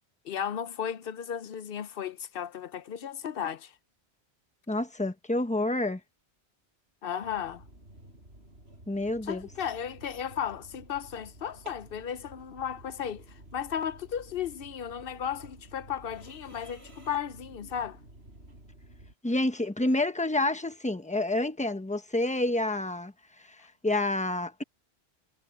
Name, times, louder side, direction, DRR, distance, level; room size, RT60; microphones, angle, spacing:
voice 1, 0.2-3.7 7.0-7.6 9.2-18.0, left 8 dB, 60° left, 0.8 m, -35 dB
voice 2, 4.7-6.0 8.9-9.5 19.2-23.1 23.4-23.6 23.8-24.6, left 2 dB, 5° left, 1.0 m, -28 dB
sound 1, 7.2-19.1, right 1 dB, 70° right, 8.1 m, -52 dB
omnidirectional pair, 1.1 m